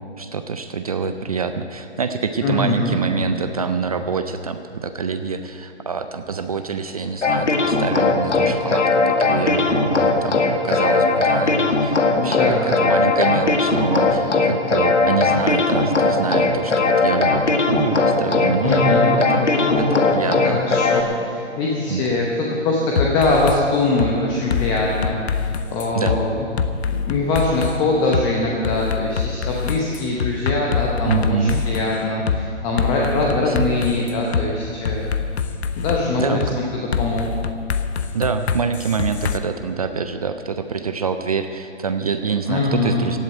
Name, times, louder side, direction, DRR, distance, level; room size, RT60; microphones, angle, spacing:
voice 1, 0.0-19.0 19.3-20.6 21.9-22.0 25.9-26.2 31.0-31.7 33.3-33.7 36.2-36.6 38.1-43.2, right 5 dB, 30° right, 8 dB, 0.5 m, -26 dB
voice 2, 2.4-3.0 12.2-12.7 18.6-19.1 19.4-20.0 20.4-26.5 26.9-35.1 35.7-36.6 37.0-37.3 42.5-43.0, left 2 dB, 10° left, -2 dB, 0.9 m, -22 dB
sound 1, 7.2-21.0, left 3 dB, 75° left, 1.8 m, -19 dB
sound 2, 23.0-23.6 24.0-24.1 24.5-26.2 26.6-27.8 28.1-28.2 28.6-31.9 32.3-32.4 32.8-34.4 34.8-36.0 36.4-36.5 36.9-39.4, left 6 dB, 60° left, 1.0 m, -24 dB
16.0 x 7.7 x 9.1 m, 2.6 s
hypercardioid pair, 150°, 36 cm